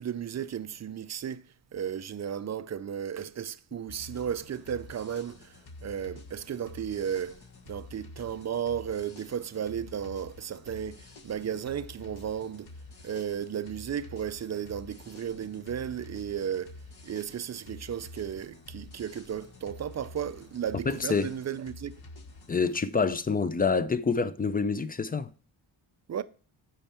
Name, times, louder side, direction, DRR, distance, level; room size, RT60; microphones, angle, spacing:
voice 1, 0.0-1.4 1.7-5.5 5.8-7.4 7.7-12.7 13.0-16.7 17.0-21.9 26.1-26.2, right 8 dB, 35° right, 0.5 m, -34 dB
sound 1, 3.9-22.6, left 2 dB, 50° left, 1.5 m, -49 dB
voice 2, 20.9-21.3 22.5-25.3, left 4 dB, 20° left, 0.5 m, -27 dB
8.8 x 5.6 x 4.3 m
wide cardioid pair, 130°, 48 cm